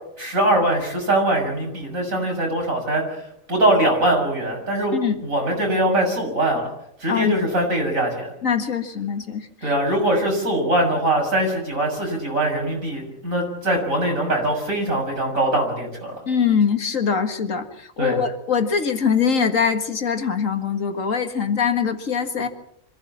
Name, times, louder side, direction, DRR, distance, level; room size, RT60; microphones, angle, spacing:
voice 1, 0.2-3.0 3.5-6.7 7.0-8.3 9.6-16.2 18.0-18.2, right 1 dB, 80° right, 1 dB, 7.2 m, -22 dB
voice 2, 4.9-5.2 7.1-7.3 8.4-9.7 16.3-22.5, left 6 dB, 70° left, 7 dB, 2.2 m, -22 dB
25.5 x 16.0 x 7.5 m, 0.76 s
omnidirectional pair, 1.4 m